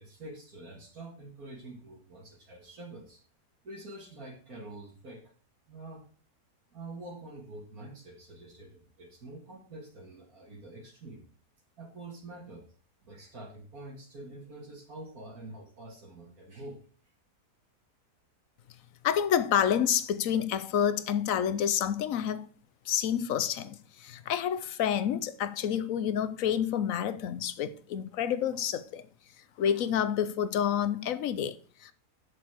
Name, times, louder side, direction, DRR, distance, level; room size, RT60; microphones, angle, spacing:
voice 1, 0.0-3.2 3.6-5.3 5.7-6.0 6.7-11.2 11.8-12.6 13.0-16.8, right 2 dB, 65° right, 2.3 m, -46 dB
voice 2, 19.0-22.5 22.9-29.0 29.6-31.9, left 9 dB, 65° left, 1.1 m, -29 dB
7.8 x 6.7 x 6.1 m
omnidirectional pair, 1.7 m